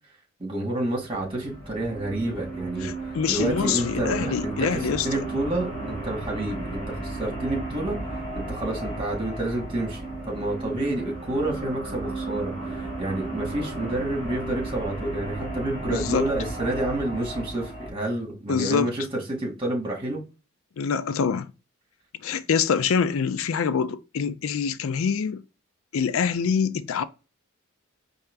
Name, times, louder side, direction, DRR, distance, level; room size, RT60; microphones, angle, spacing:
voice 1, 0.4-2.9 3.3-8.0 8.3-20.2, right 1 dB, 25° right, 1.7 m, -29 dB
sound 1, 0.9-17.9, right 2 dB, 35° left, 1.8 m, -34 dB
voice 2, 2.8-5.1 15.9-16.3 18.5-18.9 20.8-21.5 22.2-25.4 25.9-27.0, left 6 dB, 85° left, 0.4 m, -25 dB
4.7 x 2.8 x 3.4 m
head